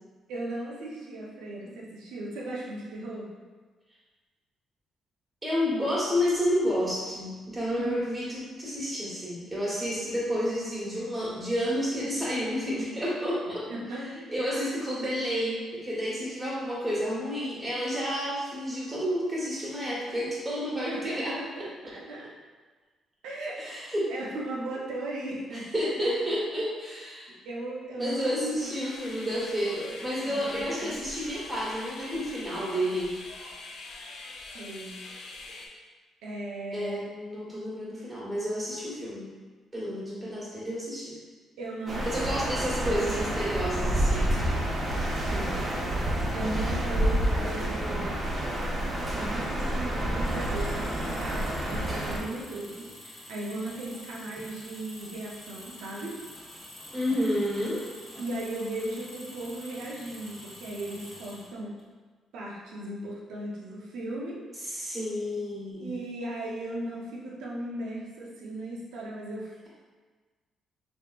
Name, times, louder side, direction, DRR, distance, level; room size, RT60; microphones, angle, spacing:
voice 1, 0.3-3.3 7.7-8.0 13.5-14.2 14.5-14.6 20.9-22.3 23.2-25.9 27.4-29.1 30.2-31.0 34.5-35.0 36.2-37.0 41.6-42.6 42.9-43.2 45.2-45.6 46.3-48.3 49.1-56.2 58.2-61.7 62.3-64.8 65.8-69.7, right 1 dB, 90° right, -4 dB, 0.7 m, -37 dB
voice 2, 5.4-14.0 14.3-21.3 23.6-24.1 25.5-27.3 28.0-33.1 36.7-39.3 39.7-41.2 42.0-44.3 52.2-52.4 56.9-57.8 64.6-66.0, equal, 15° right, -8 dB, 1.5 m, -30 dB
sound 1, 28.6-35.7, left 2 dB, 75° left, 0.5 m, -44 dB
sound 2, 41.9-52.2, right 1 dB, 40° right, 0.9 m, -29 dB
Engine, 50.2-61.8, left 1 dB, 25° left, 1.1 m, -46 dB
3.5 x 3.1 x 2.4 m, 1.4 s
cardioid pair, 90°, 0 cm